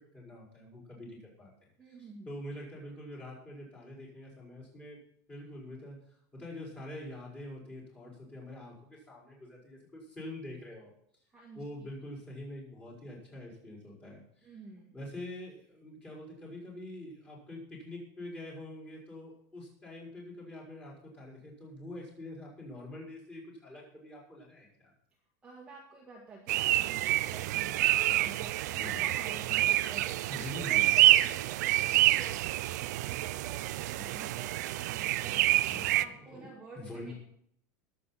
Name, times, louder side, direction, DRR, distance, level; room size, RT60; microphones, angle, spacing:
voice 1, 0.1-5.0 5.3-6.0 6.3-10.9 11.5-14.6 14.9-24.9 27.2-27.3 28.7-29.1 30.3-30.9 35.6-36.5 36.7-37.1, left 1 dB, 15° left, -4 dB, 4.8 m, -45 dB
voice 2, 1.8-2.3 11.3-11.9 14.4-14.9 25.4-30.2 30.6-37.1, right 3 dB, 10° right, -3 dB, 1.8 m, -50 dB
sound 1, 26.5-36.1, right 15 dB, 75° right, 0.5 m, -27 dB
21.0 x 7.9 x 4.2 m, 0.67 s
supercardioid pair, 175°, 9 cm